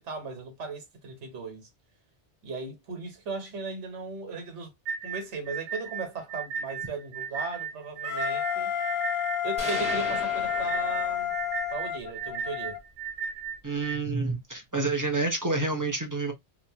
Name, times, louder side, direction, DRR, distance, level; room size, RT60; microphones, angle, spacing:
voice 1, 0.0-1.7 2.4-4.7 5.0-8.7 9.4-11.3 11.7-12.8, right 4 dB, 85° right, 1.3 m, -37 dB
sound 1, 4.9-14.0, right 6 dB, 65° right, 0.7 m, -36 dB
Wind instrument woodwind instrument, 8.0-12.8, left 10 dB, 55° left, 0.6 m, -30 dB
sound 2, 9.6-11.5, equal, 5° right, 0.8 m, -37 dB
voice 2, 13.6-16.3, right 3 dB, 25° right, 0.4 m, -28 dB
2.8 x 2.2 x 2.7 m
omnidirectional pair, 1.2 m